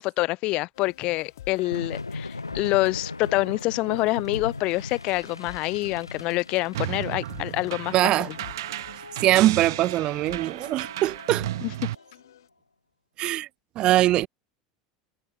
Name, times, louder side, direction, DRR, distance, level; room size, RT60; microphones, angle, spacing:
voice 1, 0.0-8.3 11.6-11.7, left 21 dB, 45° left, 0.4 m, -26 dB
sound 1, 0.7-12.5, left 13 dB, 65° left, 2.0 m, -49 dB
sound 2, 1.5-12.1, left 3 dB, 85° left, 0.9 m, -40 dB
sound 3, 6.7-11.9, right 14 dB, 65° right, 1.0 m, -34 dB
voice 2, 7.9-8.3 9.2-11.5 13.2-13.5 13.8-14.3, right 15 dB, 40° right, 0.4 m, -22 dB
figure-of-eight pair, 75°, 2 cm